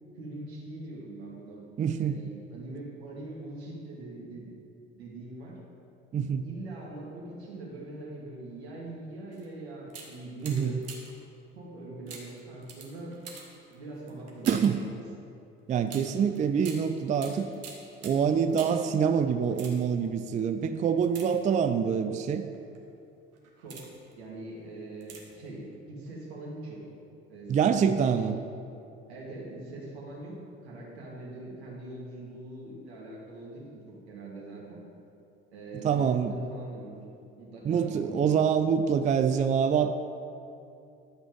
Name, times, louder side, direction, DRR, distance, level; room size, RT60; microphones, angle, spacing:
voice 1, 0.2-1.6 2.0-4.5 4.9-5.6 6.4-10.9 11.5-13.2 13.7-14.8 23.6-23.9 24.2-26.8 27.3-27.9 29.1-34.8 35.5-36.9 37.4-38.4, right 2 dB, 75° right, -4 dB, 2.3 m, -42 dB
voice 2, 1.8-2.2 6.1-6.5 10.4-10.8 14.5-14.8 15.7-17.5 18.0-22.5 27.5-28.4 35.8-36.3 37.6-40.0, right 7 dB, 25° right, 9 dB, 0.4 m, -25 dB
sound 1, 9.3-9.5 9.9-11.3 12.1-14.8 15.9-18.9 19.4-20.1 21.0-21.9 22.5-22.8 23.3-24.1 25.0-25.5 25.7-25.8, right 5 dB, 50° right, 1.8 m, -46 dB
11.5 x 5.2 x 5.2 m, 2.7 s
figure-of-eight pair, 55°, 32 cm